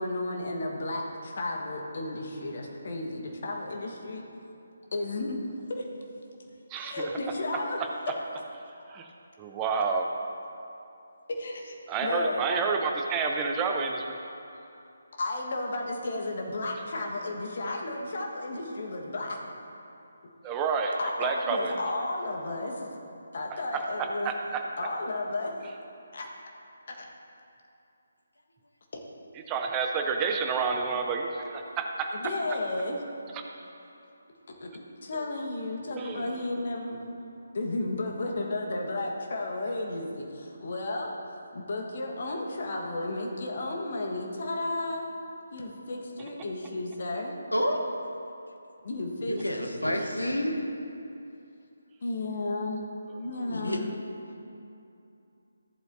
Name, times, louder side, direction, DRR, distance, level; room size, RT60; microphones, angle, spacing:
voice 1, 0.0-4.2 4.9-5.9 6.8-7.8 11.4-12.5 14.6-14.7 15.2-19.4 21.0-22.9 23.3-24.3 24.8-25.6 26.1-26.3 26.9-27.0 32.1-33.0 34.5-37.2 37.5-41.1 41.5-45.1 45.5-47.3 48.8-50.4 52.0-52.9 53.2-53.9, left 2 dB, 45° left, 0 dB, 1.4 m, -33 dB
voice 2, 6.7-7.1 8.9-9.1 9.4-10.1 11.9-14.2 20.4-21.8 23.5-24.6 29.5-32.1 33.3-33.4 35.2-35.3 36.0-36.4 53.4-53.9, right 5 dB, 15° right, 2 dB, 0.7 m, -30 dB
voice 3, 47.5-47.8 49.2-50.6 53.5-53.8, equal, 75° left, 2 dB, 1.2 m, -29 dB
14.5 x 7.8 x 2.7 m, 2.7 s
figure-of-eight pair, 145°, 0 cm